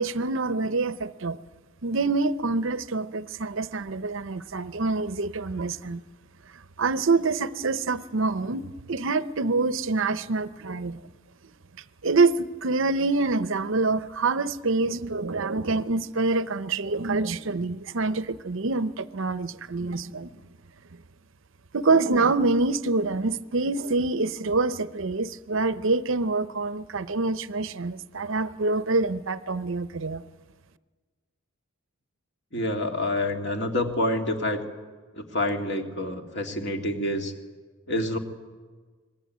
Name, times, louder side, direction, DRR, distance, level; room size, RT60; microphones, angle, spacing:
voice 1, 0.0-1.4 1.8-6.0 6.8-11.0 12.0-20.3 21.7-30.2, right 3 dB, 60° right, 0.7 m, -26 dB
voice 2, 32.5-34.6 35.1-37.3 37.9-38.2, left 1 dB, 50° left, 2.4 m, -27 dB
25.5 x 21.0 x 9.3 m
head